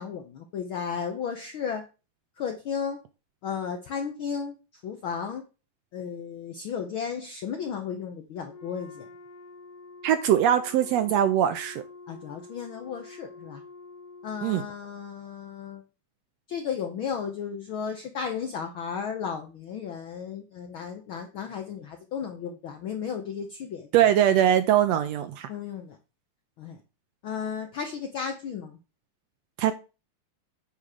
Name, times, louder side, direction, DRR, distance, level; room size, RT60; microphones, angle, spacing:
voice 1, 0.0-1.8 2.4-3.0 3.4-4.5 4.8-5.4 5.9-9.1 12.1-13.6 14.2-15.8 16.5-23.9 25.5-26.0 26.6-26.8 27.2-28.8, left 7 dB, 75° left, 5 dB, 1.2 m, -34 dB
Wind instrument woodwind instrument, 8.4-14.5, left 3 dB, 90° left, 2.5 m, -47 dB
voice 2, 10.0-11.8 14.4-14.6 23.9-25.5 29.6-29.7, right 10 dB, 75° right, 10 dB, 1.6 m, -22 dB
9.3 x 3.7 x 6.4 m, 0.31 s
omnidirectional pair, 3.5 m